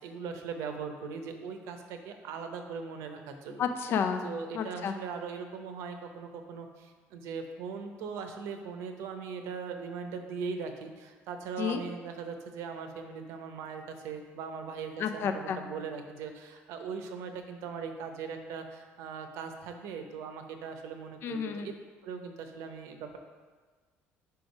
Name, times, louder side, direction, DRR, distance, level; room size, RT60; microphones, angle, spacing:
voice 1, 0.0-3.7 4.2-21.7 22.0-23.2, right 5 dB, 85° right, 6 dB, 0.7 m, -40 dB
voice 2, 3.6-4.2 4.5-4.9 11.6-11.8 15.0-15.6 21.2-21.7, left 7 dB, 55° left, 7 dB, 0.5 m, -31 dB
4.8 x 4.7 x 5.3 m, 1.4 s
cardioid pair, 125°, 5 cm